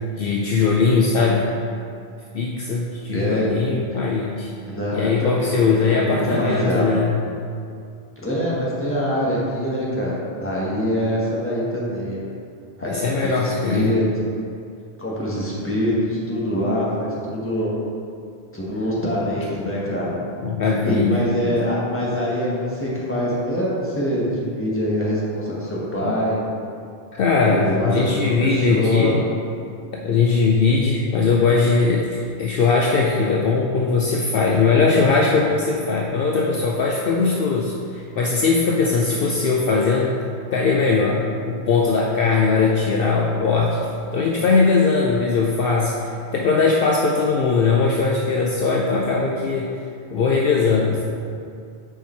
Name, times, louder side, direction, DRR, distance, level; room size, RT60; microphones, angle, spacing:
voice 1, 0.1-1.5 2.3-4.5 4.9-7.1 12.8-13.9 20.4-21.5 26.0-26.1 27.1-29.2 29.9-40.1 40.5-43.8 44.1-49.7 50.1-51.0, left 4 dB, 65° left, -2 dB, 0.7 m, -20 dB
voice 2, 3.1-3.5 4.7-6.9 8.2-10.1 10.4-12.2 12.8-14.0 15.0-17.8 18.5-20.1 20.9-26.4 27.4-29.1, equal, 10° left, -6 dB, 1.2 m, -24 dB
5.6 x 4.9 x 4.3 m, 2.4 s
omnidirectional pair, 1.1 m